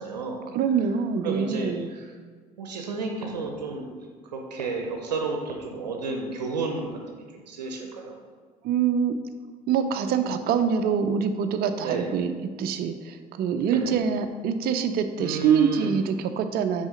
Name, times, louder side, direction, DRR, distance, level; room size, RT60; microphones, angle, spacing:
voice 1, 0.0-0.4 1.2-2.1 2.6-3.9 4.3-8.1 10.1-10.2 11.8-12.1 13.6-14.0 15.2-16.0, right 4 dB, 85° right, 2 dB, 0.6 m, -32 dB
voice 2, 0.5-1.9 8.6-9.1 9.7-12.3 12.6-16.9, right 7 dB, 50° right, 8 dB, 0.5 m, -25 dB
6.1 x 4.1 x 5.0 m, 1.5 s
hypercardioid pair, 55°, 21 cm